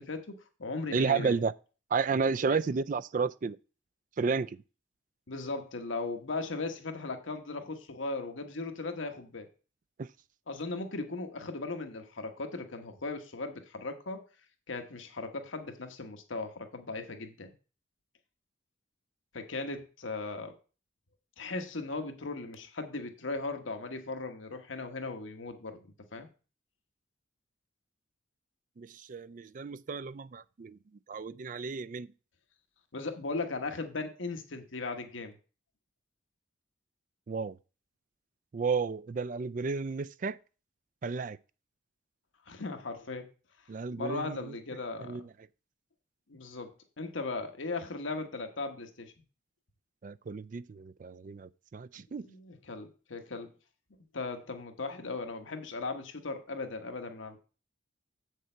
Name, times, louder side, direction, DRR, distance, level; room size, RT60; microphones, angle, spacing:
voice 1, 0.0-1.4 2.5-2.6 5.3-9.5 10.5-14.2 14.7-17.5 19.3-20.5 21.4-26.3 32.9-35.3 42.5-43.3 43.9-45.2 46.3-49.1 52.2-53.5 54.1-57.4, left 3 dB, 80° left, 1.2 m, -38 dB
voice 2, 0.9-1.5 1.9-3.6 4.2-4.6 10.0-10.1 28.8-30.8 31.1-32.1 37.3-37.6 38.5-40.4 41.0-41.4 43.7-44.6 45.0-45.3 50.0-52.3, right 5 dB, 40° right, 0.3 m, -32 dB
7.7 x 6.6 x 4.4 m
head